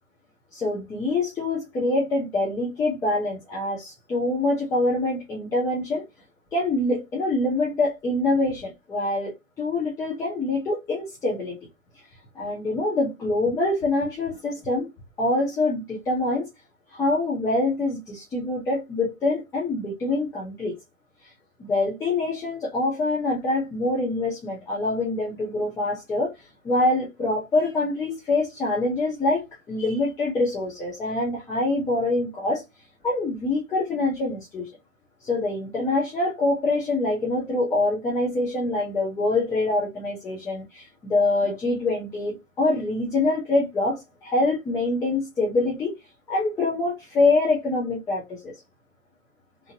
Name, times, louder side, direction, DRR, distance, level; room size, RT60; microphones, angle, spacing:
voice 1, 0.5-6.0 6.5-11.6 12.3-14.9 15.2-16.5 16.9-20.7 21.6-26.3 26.6-32.6 33.0-34.7 35.2-45.9 46.3-48.5, left 2 dB, 10° left, 0.6 m, -25 dB
2.9 x 2.5 x 2.6 m
figure-of-eight pair, 115°, 40 cm